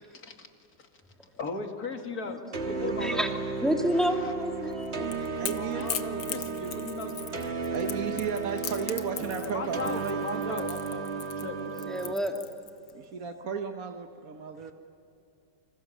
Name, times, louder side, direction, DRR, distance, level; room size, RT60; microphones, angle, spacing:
voice 1, 0.1-0.5 1.4-3.2 3.9-4.3 5.2-7.5 9.4-11.9, left 3 dB, 55° left, 4 dB, 2.8 m, -38 dB
sound 1, 2.5-12.1, right 4 dB, 40° right, 1.8 m, -34 dB
voice 2, 2.7-3.2 5.4-5.9 7.7-10.6 12.9-14.7, right 6 dB, 55° right, 5 dB, 1.5 m, -35 dB
voice 3, 3.6-5.1 11.9-12.4, equal, ahead, 2 dB, 2.4 m, -29 dB
Crackle / Crack, 4.7-12.9, left 9 dB, 75° left, 1.6 m, -39 dB
29.0 x 26.5 x 7.3 m, 2.7 s
omnidirectional pair, 1.9 m